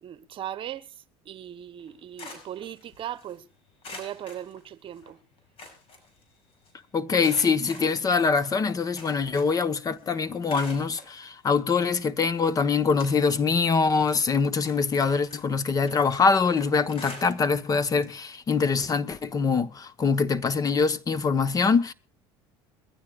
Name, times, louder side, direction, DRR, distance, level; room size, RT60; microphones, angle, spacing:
voice 1, 0.0-3.5 3.9-5.2, right 11 dB, 45° right, 1.1 m, -38 dB
sound 1, 1.8-3.4 3.8-5.1 5.4-6.7 7.2-9.7 10.0-11.1 11.8-11.9 12.4-13.6 13.9-17.7 18.0-18.2 18.5-18.6 19.9-20.0, left 3 dB, 50° left, 6.3 m, -46 dB
voice 2, 6.9-21.9, left 5 dB, 30° left, 1.1 m, -24 dB
22.0 x 14.5 x 2.4 m
supercardioid pair, 100°, 12 cm